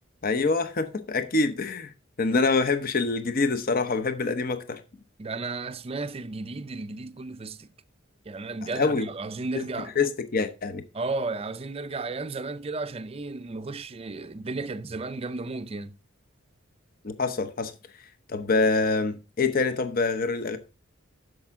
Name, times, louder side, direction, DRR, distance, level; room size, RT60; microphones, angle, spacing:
voice 1, 0.2-1.9 2.2-4.8 8.7-9.1 9.5-9.6 10.0-10.8 17.0-17.7 18.3-20.6, left 3 dB, 45° left, 0.8 m, -25 dB
voice 2, 5.2-7.7 8.3-9.9 10.9-16.0, right 3 dB, 30° right, 0.5 m, -34 dB
10.5 x 6.8 x 3.6 m
head